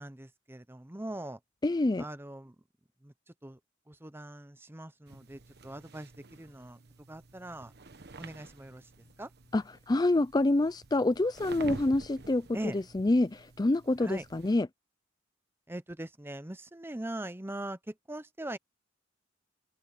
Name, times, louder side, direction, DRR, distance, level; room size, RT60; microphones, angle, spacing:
voice 1, 0.0-1.4 2.0-2.6 3.0-3.1 3.4-3.6 3.9-6.8 7.1-7.7 8.2-8.9 9.2-9.3 12.5-12.8 14.0-14.2 15.7-18.6, right 1 dB, 10° right, 0.8 m, -41 dB
voice 2, 1.6-2.0 9.5-12.5 12.7-14.7, left 2 dB, 20° left, 0.4 m, -27 dB
sound 1, 5.1-14.5, right 2 dB, 60° right, 1.2 m, -49 dB
head